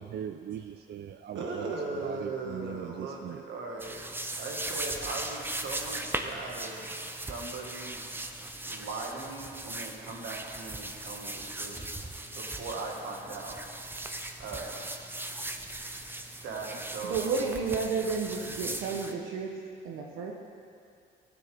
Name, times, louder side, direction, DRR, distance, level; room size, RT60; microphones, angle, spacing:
voice 1, 0.0-1.6 2.0-3.4, right 10 dB, 55° right, 8 dB, 0.4 m, -40 dB
voice 2, 1.3-4.0 4.4-8.0 8.7-11.9 12.3-13.6 14.4-14.8 16.4-17.5, right 3 dB, 75° right, 0 dB, 1.8 m, -39 dB
sound 1, 3.8-19.1, right 1 dB, 10° right, 0.7 m, -38 dB
voice 3, 17.0-19.5 19.8-20.3, right 5 dB, 90° right, 0 dB, 0.9 m, -31 dB
14.0 x 9.3 x 3.5 m, 2.4 s
cardioid pair, 90°, 20 cm